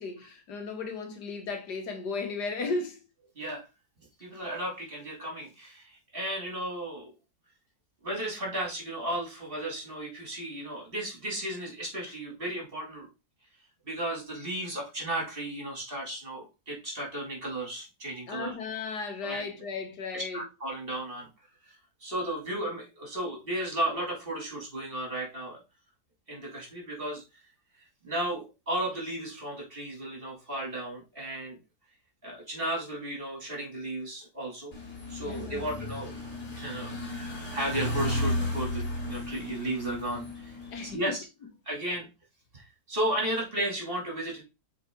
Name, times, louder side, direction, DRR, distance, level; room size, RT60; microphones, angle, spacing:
voice 1, 0.0-3.0 18.3-20.4 35.2-35.7 40.7-41.0 41.9-42.0, left 4 dB, 85° left, 1.9 m, -35 dB
voice 2, 4.2-7.1 8.0-13.1 13.9-18.5 19.2-19.5 20.1-21.3 21.7-21.8 22.0-25.6 26.3-27.2 28.0-31.6 32.2-34.7 35.1-36.2 36.5-40.6 40.9-41.2 41.6-42.1 42.5-44.4, right 1 dB, 35° right, 3.0 m, -34 dB
sound 1, 34.7-40.9, left 1 dB, 45° left, 2.2 m, -34 dB
7.4 x 4.3 x 3.8 m
omnidirectional pair, 1.7 m